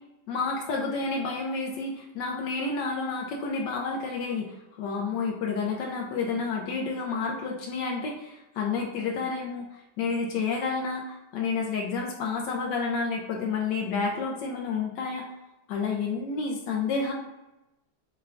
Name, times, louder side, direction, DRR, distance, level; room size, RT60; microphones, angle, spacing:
voice 1, 0.3-9.6 10.0-15.3 15.7-17.1, left 4 dB, 80° left, 0 dB, 1.2 m, -30 dB
6.6 x 2.2 x 2.4 m, 0.96 s
omnidirectional pair, 1.9 m